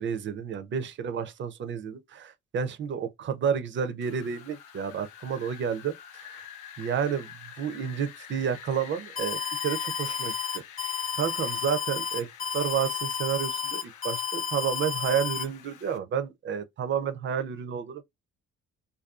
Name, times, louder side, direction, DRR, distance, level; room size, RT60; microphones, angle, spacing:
voice 1, 0.0-6.5 6.8-10.3 11.2-12.3 12.5-18.0, right 7 dB, 40° right, 0.4 m, -30 dB
Wind, 4.0-16.0, left 9 dB, 80° left, 0.5 m, -48 dB
Alarm, 9.2-15.4, left 6 dB, 40° left, 0.8 m, -31 dB
2.5 x 2.2 x 2.3 m
cardioid pair, 90°, 30 cm